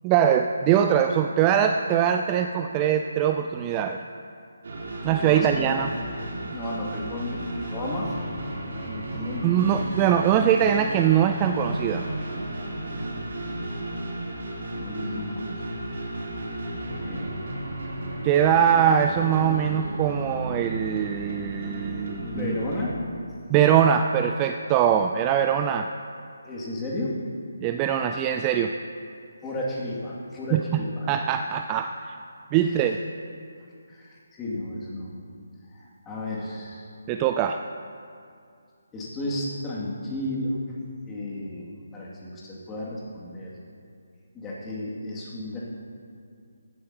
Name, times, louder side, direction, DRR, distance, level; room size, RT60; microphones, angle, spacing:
voice 1, 0.0-4.0 5.0-5.9 9.4-12.0 18.2-22.5 23.5-25.9 27.6-28.7 30.5-30.8 31.1-32.2 32.5-33.0 37.1-37.6, right 9 dB, 20° right, 6 dB, 0.3 m, -22 dB
sound 1, 4.6-22.9, right 1 dB, 55° right, 3.1 m, -34 dB
voice 2, 5.2-6.0 6.5-9.8 14.7-15.7 17.0-17.5 22.2-23.0 26.4-27.2 29.4-31.1 32.7-32.9 33.9-35.2 35.7-36.9 38.9-40.6 41.1-43.5 44.3-45.6, left 1 dB, 15° left, -6 dB, 2.2 m, -33 dB
16.0 x 11.5 x 2.8 m, 2.3 s
figure-of-eight pair, 150°, 0 cm